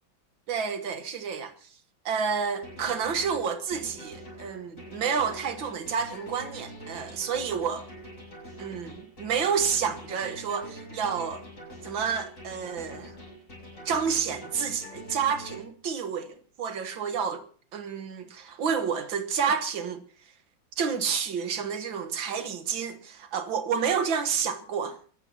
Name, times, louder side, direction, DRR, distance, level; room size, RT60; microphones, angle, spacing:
voice 1, 0.5-1.7 2.1-7.9 8.6-11.5 11.8-13.1 13.9-17.5 17.7-20.0 20.8-25.0, right 6 dB, 80° right, 2.1 m, -29 dB
sound 1, 2.6-15.6, equal, 40° left, 7.5 m, -44 dB
26.5 x 14.5 x 2.9 m
omnidirectional pair, 2.1 m